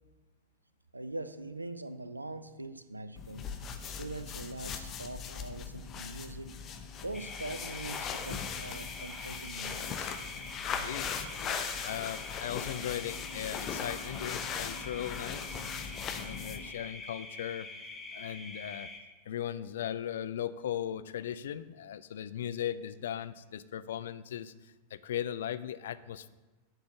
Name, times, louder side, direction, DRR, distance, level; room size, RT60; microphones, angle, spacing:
voice 1, 0.9-3.5 4.0-6.5 7.0-10.1, right 2 dB, 85° right, 11 dB, 0.5 m, -42 dB
sound 1, 3.2-16.7, left 6 dB, 30° left, 0.8 m, -39 dB
sound 2, 7.1-19.0, left 3 dB, 15° left, 1.5 m, -45 dB
voice 2, 10.8-15.6 16.2-17.7 18.1-18.9 19.3-24.5 24.9-26.3, left 10 dB, 60° left, 16 dB, 0.4 m, -38 dB
7.9 x 6.0 x 7.0 m, 1.2 s
figure-of-eight pair, 90°, 0 cm